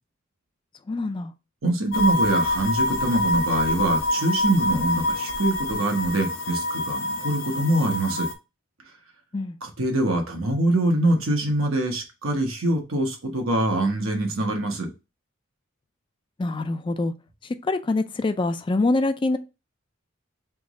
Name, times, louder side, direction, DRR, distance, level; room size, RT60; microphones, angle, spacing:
voice 1, 0.9-1.3 9.3-9.6 16.4-17.1 17.6-19.4, left 2 dB, 25° left, 0.3 m, -24 dB
voice 2, 1.6-8.3 9.6-14.9, right 1 dB, 85° right, 1.1 m, -24 dB
sound 1, 1.9-8.3, left 1 dB, 65° left, 0.8 m, -26 dB
3.5 x 3.1 x 3.7 m
head